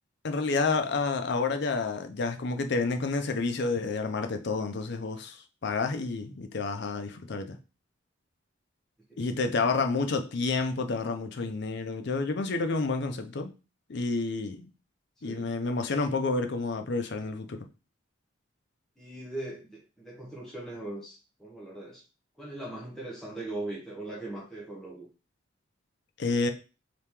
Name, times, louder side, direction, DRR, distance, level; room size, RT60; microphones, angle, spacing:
voice 1, 0.2-7.6 9.2-13.5 13.9-14.7 15.2-17.7 26.2-26.5, left 3 dB, 60° left, 0.5 m, -29 dB
voice 2, 9.1-9.4 9.7-9.8 15.2-15.5 19.0-22.0 22.4-25.1, right 2 dB, ahead, 0.8 m, -40 dB
3.0 x 2.8 x 3.5 m
head